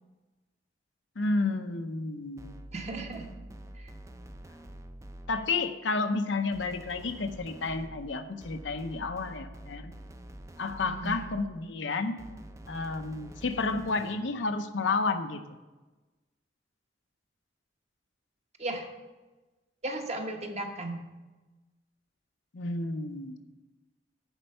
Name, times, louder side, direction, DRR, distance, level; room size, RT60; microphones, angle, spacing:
voice 1, 1.2-2.6 5.3-9.9 10.6-12.2 12.7-15.4 22.5-23.4, left 3 dB, 90° left, 7 dB, 0.7 m, -31 dB
sound 1, 2.4-5.6 6.5-11.7 12.2-14.4, right 1 dB, 15° right, 0.5 m, -47 dB
voice 2, 2.7-3.3 3.8-3.9 11.0-11.2 18.6-18.9 19.8-21.0, right 2 dB, 40° right, 3 dB, 1.1 m, -35 dB
9.8 x 4.4 x 6.6 m, 1.2 s
head